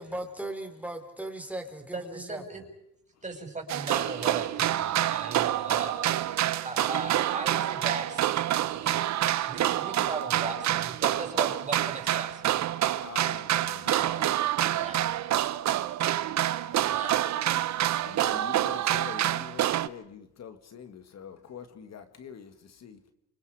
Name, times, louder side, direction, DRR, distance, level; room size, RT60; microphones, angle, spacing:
voice 1, 0.0-2.4, right 1 dB, 5° right, 4.7 m, -37 dB
voice 2, 1.9-2.6 3.2-9.0 9.5-12.7 14.0-14.2 14.7-15.0 16.9-17.1 17.9-18.0, right 3 dB, 25° right, 6.2 m, -38 dB
sound 1, 3.7-19.9, right 12 dB, 65° right, 0.8 m, -27 dB
voice 3, 13.0-15.4 16.7-17.1 18.0-23.0, left 7 dB, 60° left, 1.9 m, -46 dB
29.5 x 27.5 x 4.9 m
cardioid pair, 90°, 30 cm